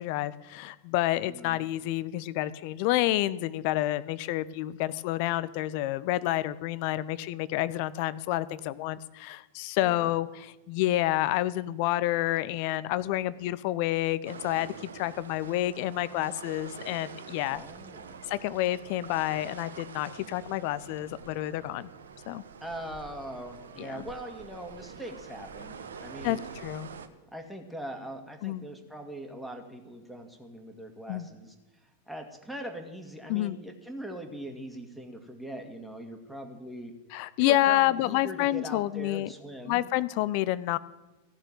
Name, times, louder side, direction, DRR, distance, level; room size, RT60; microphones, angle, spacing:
voice 1, 0.0-17.6 18.3-21.9 22.3-22.4 23.8-24.0 26.2-26.9 28.4-28.7 31.1-31.3 33.3-33.6 37.1-39.3 39.7-40.8, left 15 dB, 45° left, 16 dB, 0.5 m, -29 dB
voice 2, 1.3-1.7 9.8-10.1 17.5-18.2 22.6-26.4 27.3-31.5 32.1-36.9 37.4-39.8, right 1 dB, ahead, 3 dB, 1.9 m, -41 dB
sound 1, 14.3-27.1, right 6 dB, 65° right, 1.0 m, -46 dB
15.0 x 6.6 x 9.2 m, 1.1 s
figure-of-eight pair, 90°, 0 cm